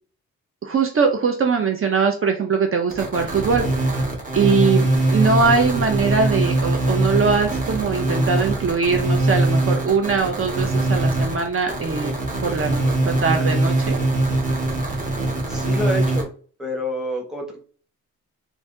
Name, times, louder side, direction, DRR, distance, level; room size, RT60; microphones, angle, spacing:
voice 1, 0.6-3.6 4.3-12.1 12.4-14.0, right 5 dB, 40° right, 4 dB, 0.6 m, -21 dB
sound 1, 2.9-16.2, right 2 dB, 25° right, 1.3 m, -22 dB
voice 2, 15.5-16.3 16.6-17.6, equal, ahead, 0 dB, 1.0 m, -27 dB
3.3 x 2.6 x 3.7 m, 0.42 s
wide cardioid pair, 130°, 32 cm